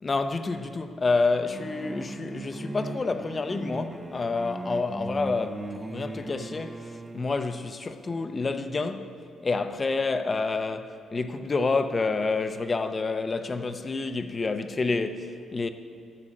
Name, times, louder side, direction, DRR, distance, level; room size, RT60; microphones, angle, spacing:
voice 1, 0.0-9.1 9.4-15.7, left 3 dB, 30° left, 0.6 m, -28 dB
sound 1, 1.5-7.3, right 1 dB, 15° right, 0.4 m, -38 dB
10.0 x 6.4 x 7.5 m
cardioid pair, 90°, 0 cm